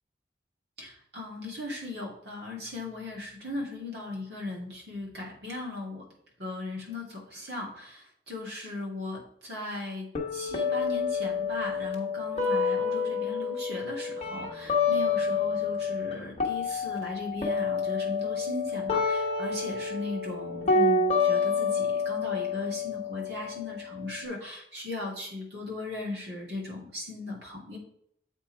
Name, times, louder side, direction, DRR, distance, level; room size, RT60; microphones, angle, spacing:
voice 1, 0.8-6.0 6.4-10.1 10.3-27.8, left 2 dB, 60° right, -2 dB, 2.3 m, -37 dB
sound 1, 10.1-16.1 16.4-24.2, left 4 dB, 35° left, 1.2 m, -28 dB
7.6 x 4.5 x 4.6 m, 0.69 s
head